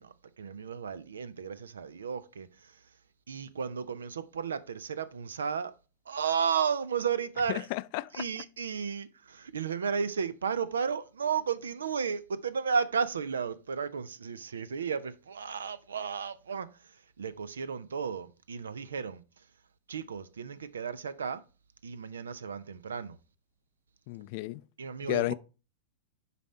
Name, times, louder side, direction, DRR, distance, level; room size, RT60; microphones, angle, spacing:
voice 1, 0.0-2.8 3.3-5.7 6.1-7.7 8.1-19.2 19.9-21.4 21.8-23.2 24.8-25.3, right 6 dB, 85° right, 0.6 m, -33 dB
voice 2, 7.5-8.2 24.1-24.6 25.1-25.3, left 21 dB, 55° left, 0.3 m, -32 dB
7.1 x 4.2 x 4.3 m
hypercardioid pair, 105°, 0 cm